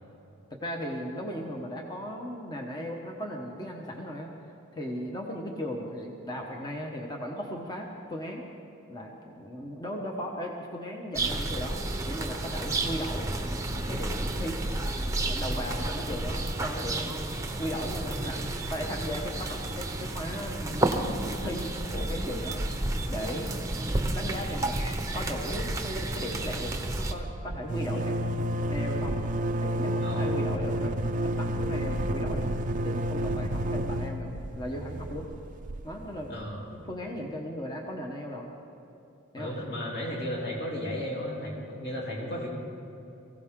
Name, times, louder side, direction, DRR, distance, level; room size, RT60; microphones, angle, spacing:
voice 1, 0.5-4.3 4.7-8.4 8.9-13.3 13.9-14.9 15.2-17.2 17.6-22.7 23.1-23.5 24.1-24.8 25.1-29.2 29.6-35.3 35.8-36.3 36.7-38.5 39.3-39.5, equal, 20° left, 0 dB, 1.1 m, -37 dB
sound 1, 11.1-27.1, right 2 dB, 15° right, 0.9 m, -31 dB
sound 2, 25.5-25.6 25.8-36.5, right 1 dB, 35° right, 0.5 m, -31 dB
voice 2, 30.0-30.4 36.3-36.7 39.4-42.5, equal, 50° left, -3 dB, 3.1 m, -34 dB
23.0 x 16.0 x 3.7 m, 2.9 s
head